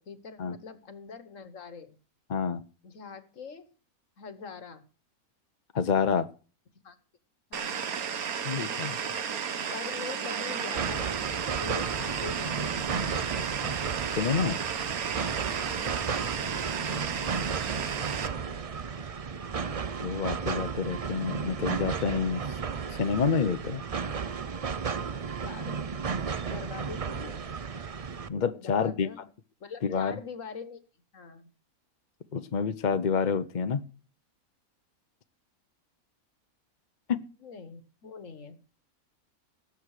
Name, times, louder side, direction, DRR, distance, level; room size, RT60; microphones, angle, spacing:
voice 1, 0.0-1.9 2.8-3.7 4.2-4.8 6.8-7.0 7.5-7.8 9.7-13.2 16.4-16.9 25.4-27.4 28.6-29.3 29.6-30.8 31.1-31.5 37.4-38.6, left 5 dB, 60° left, 1.7 m, -43 dB
voice 2, 2.3-2.6 5.7-6.3 8.4-9.2 14.2-14.6 20.0-22.4 22.9-23.8 28.3-29.1 29.8-30.2 32.3-33.8 37.1-37.3, left 6 dB, 40° left, 0.7 m, -28 dB
sound 1, 7.5-18.3, right 7 dB, 75° right, 1.6 m, -33 dB
sound 2, 10.7-28.3, right 5 dB, 50° right, 0.4 m, -34 dB
18.5 x 8.1 x 4.9 m
omnidirectional pair, 1.5 m